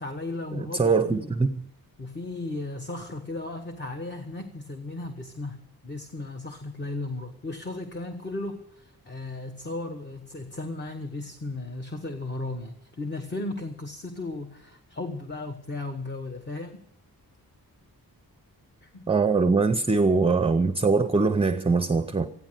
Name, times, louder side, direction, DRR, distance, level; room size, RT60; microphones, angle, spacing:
voice 1, 0.0-1.3 2.0-16.8 18.8-19.1, left 2 dB, 30° left, 1.1 m, -35 dB
voice 2, 0.5-1.7 19.1-22.3, right 4 dB, 15° right, 0.5 m, -22 dB
14.5 x 10.5 x 9.1 m
wide cardioid pair, 160°, 37 cm